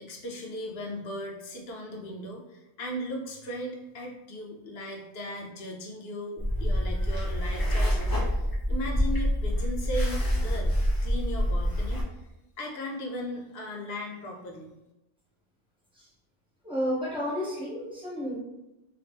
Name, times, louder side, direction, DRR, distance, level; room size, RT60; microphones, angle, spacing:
voice 1, 0.0-12.2 12.6-14.7, equal, 60° left, 0 dB, 0.7 m, -37 dB
sound 1, 6.4-12.0, equal, 25° left, 0.5 m, -26 dB
voice 2, 16.6-18.4, equal, 5° right, -8 dB, 1.0 m, -31 dB
2.9 x 2.8 x 3.4 m, 0.96 s
omnidirectional pair, 1.4 m